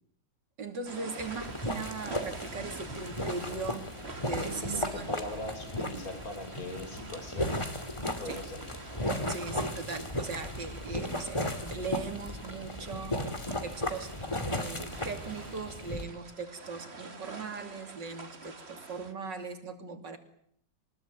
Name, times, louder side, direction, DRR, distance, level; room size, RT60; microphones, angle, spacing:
voice 1, 0.6-3.9 4.2-5.1 8.2-8.4 9.3-13.3 13.6-14.2 14.5-20.2, right 4 dB, 70° right, 7 dB, 3.5 m, -39 dB
sound 1, 0.9-19.1, right 3 dB, 35° right, 2.3 m, -47 dB
sound 2, 1.2-16.0, left 1 dB, 15° left, 2.3 m, -36 dB
voice 2, 4.4-7.5 8.2-8.6, left 1 dB, 50° left, 7 dB, 5.1 m, -40 dB
24.0 x 20.5 x 9.6 m, 0.66 s
omnidirectional pair, 2.0 m